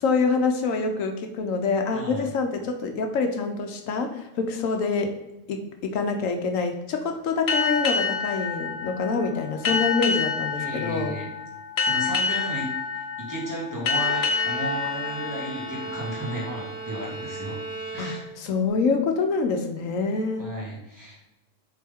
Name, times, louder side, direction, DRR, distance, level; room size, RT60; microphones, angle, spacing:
voice 1, 0.0-5.1 5.5-11.2 18.0-20.5, left 4 dB, 75° left, 5 dB, 1.1 m, -26 dB
voice 2, 1.9-2.3 10.6-11.3 11.8-12.7 12.9-17.6 17.9-18.2 20.4-21.2, right 1 dB, 15° right, -5 dB, 1.9 m, -34 dB
sound 1, 7.5-16.6, left 5 dB, 55° left, 1.0 m, -28 dB
Bowed string instrument, 13.9-18.7, right 2 dB, 10° left, 1.3 m, -36 dB
7.5 x 3.8 x 3.5 m, 0.96 s
omnidirectional pair, 1.4 m